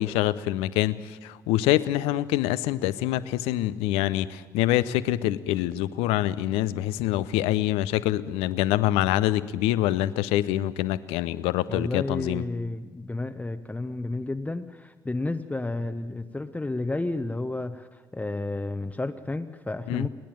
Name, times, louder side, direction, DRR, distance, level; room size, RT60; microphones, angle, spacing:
voice 1, 0.0-12.4 19.9-20.1, left 14 dB, 70° left, 16 dB, 0.6 m, -25 dB
voice 2, 11.7-20.1, left 2 dB, 15° left, 8 dB, 0.9 m, -31 dB
30.0 x 10.0 x 9.1 m, 1.3 s
figure-of-eight pair, 45°, 10 cm